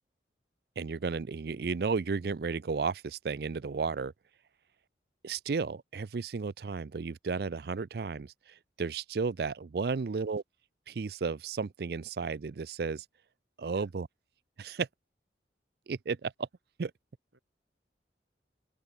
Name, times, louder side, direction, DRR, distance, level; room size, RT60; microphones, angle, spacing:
voice 1, 0.8-4.1 5.2-10.4 10.9-13.1 13.6-14.1 14.6-14.9 15.9-16.5 16.8-16.9, right 4 dB, 55° right, 0.4 m, -33 dB
voice 2, 10.0-10.3 13.7-13.9 17.3-17.4, right 2 dB, 85° right, 5.0 m, -61 dB
open air
head